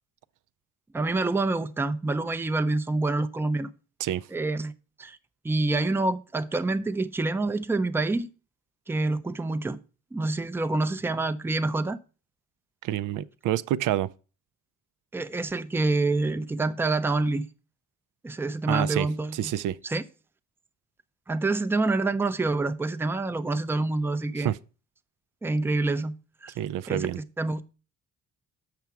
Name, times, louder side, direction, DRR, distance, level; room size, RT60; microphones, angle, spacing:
voice 1, 0.9-3.7 4.3-4.7 5.0-5.2 5.4-8.3 8.9-9.8 10.1-12.0 15.1-17.5 18.2-19.5 19.8-20.0 21.3-24.5 25.4-26.1 26.4-26.5 26.9-27.1 27.4-27.6, right 2 dB, 5° right, 0.4 m, -27 dB
voice 2, 12.8-14.1 18.7-19.1 19.3-19.8 24.4-24.6 26.6-27.2, right 12 dB, 80° right, 0.5 m, -28 dB
6.9 x 5.9 x 4.6 m
cardioid pair, 85°, 31 cm